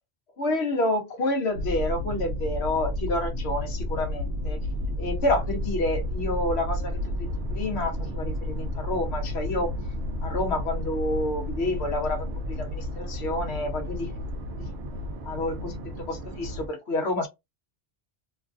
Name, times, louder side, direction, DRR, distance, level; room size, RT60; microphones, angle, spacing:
voice 1, 0.4-4.6 5.0-7.0 7.5-9.7 10.2-14.1 15.2-15.8 16.1-17.3, left 1 dB, 75° left, 1.1 m, -29 dB
sound 1, 1.5-16.7, left 1 dB, 75° right, 0.9 m, -32 dB
3.1 x 2.4 x 2.5 m
omnidirectional pair, 1.1 m